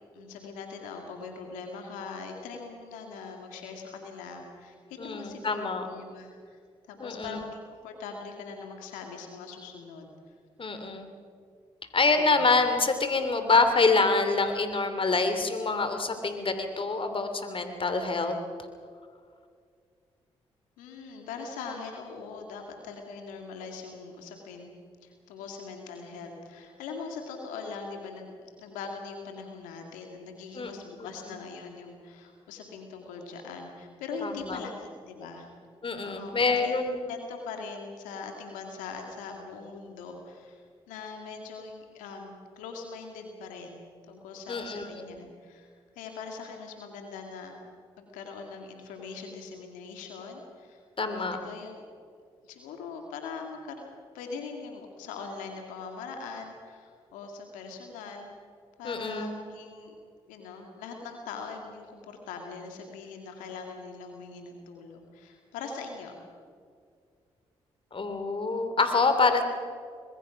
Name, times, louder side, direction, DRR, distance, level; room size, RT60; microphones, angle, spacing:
voice 1, 0.1-6.6 6.9-10.3 12.1-12.4 20.8-35.5 36.0-47.5 48.0-51.9 52.4-53.9 54.1-58.3 58.8-59.9 60.3-66.2, left 4 dB, 85° left, 3 dB, 2.4 m, -42 dB
voice 2, 5.0-5.8 7.0-7.4 10.6-11.1 11.9-18.3 30.5-30.7 34.2-34.6 35.8-37.1 44.5-45.1 51.0-51.4 58.8-59.3 67.9-69.4, left 3 dB, 40° left, 7 dB, 3.2 m, -26 dB
25.5 x 21.0 x 6.0 m, 2.2 s
hypercardioid pair, 45°, 13 cm